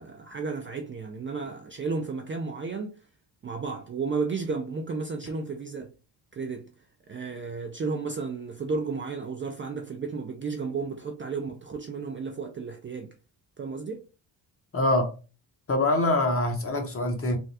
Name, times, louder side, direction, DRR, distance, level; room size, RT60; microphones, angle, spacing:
voice 1, 0.0-2.9 3.4-5.9 6.3-6.7 7.1-13.1 13.6-14.0, right 4 dB, 30° right, 0.4 m, -33 dB
voice 2, 14.7-15.1 15.7-17.4, left 1 dB, 30° left, 0.9 m, -24 dB
3.4 x 2.2 x 2.7 m
cardioid pair, 115°, 42 cm